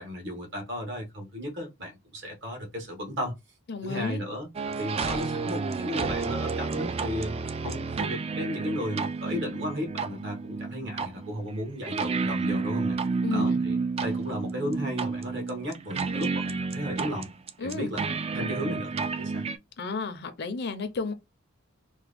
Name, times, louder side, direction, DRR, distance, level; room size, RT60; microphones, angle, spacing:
voice 1, 0.0-3.4 3.8-4.5 4.8-7.3 7.6-13.0 13.3-17.3 17.6-18.0 18.3-19.4, equal, 60° right, 1.5 m, -34 dB
voice 2, 3.7-4.2 13.2-13.6 17.6-17.9 19.8-21.1, left 4 dB, 55° left, 0.6 m, -32 dB
sound 1, 4.5-19.6, right 4 dB, 30° right, 0.3 m, -30 dB
3.4 x 2.2 x 3.4 m
head